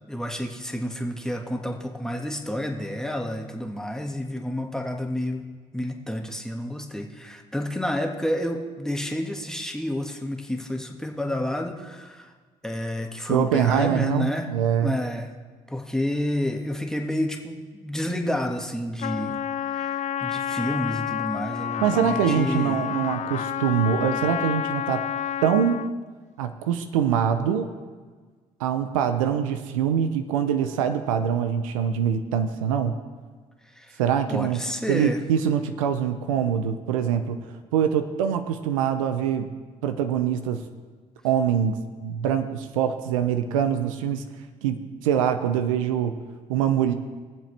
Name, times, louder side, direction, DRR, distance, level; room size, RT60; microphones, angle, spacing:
voice 1, 0.1-5.4 5.7-12.3 12.6-14.5 14.8-15.3 15.7-19.4 19.6-22.9 33.7-34.0 34.3-35.2, left 1 dB, 5° left, 2 dB, 1.6 m, -29 dB
voice 2, 13.3-15.0 21.8-25.0 25.4-25.9 26.4-27.7 28.6-33.0 34.0-34.6 34.9-37.4 37.7-39.5 39.8-40.6 41.2-44.2 44.6-46.1 46.5-46.9, right 8 dB, 90° right, 9 dB, 0.5 m, -24 dB
Trumpet, 19.0-25.9, left 10 dB, 45° left, 0.4 m, -29 dB
22.0 x 7.5 x 3.3 m, 1.5 s
hypercardioid pair, 50°, 17 cm